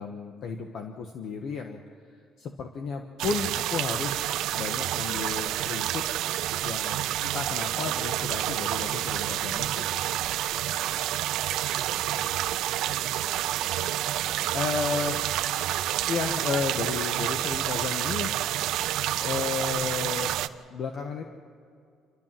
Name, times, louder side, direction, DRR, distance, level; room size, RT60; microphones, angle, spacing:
voice 1, 0.0-1.8 2.4-6.0 6.6-10.0 14.5-15.2 16.1-18.3 19.2-20.4 20.7-21.2, left 5 dB, 55° left, 4 dB, 1.4 m, -33 dB
sound 1, 3.2-20.5, right 13 dB, 75° right, 0.6 m, -29 dB
voice 2, 9.8-12.2 12.5-13.4, left 1 dB, 30° left, 1 dB, 6.1 m, -55 dB
28.0 x 13.0 x 7.6 m, 2.4 s
cardioid pair, 130°, 0 cm